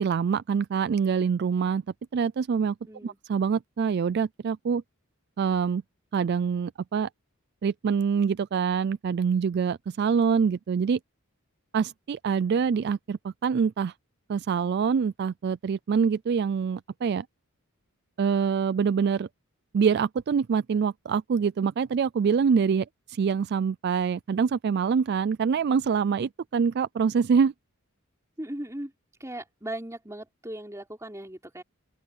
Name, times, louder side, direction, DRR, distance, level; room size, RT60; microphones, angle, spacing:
voice 1, 0.0-1.8 2.1-2.7 3.0-4.8 5.4-5.8 6.1-7.1 7.6-11.0 11.7-13.9 14.3-17.3 18.2-19.3 19.7-27.5, right 6 dB, 45° right, 0.3 m, -25 dB
voice 2, 2.9-3.2 28.4-28.9 29.2-31.6, right 1 dB, 15° right, 4.7 m, -38 dB
open air
head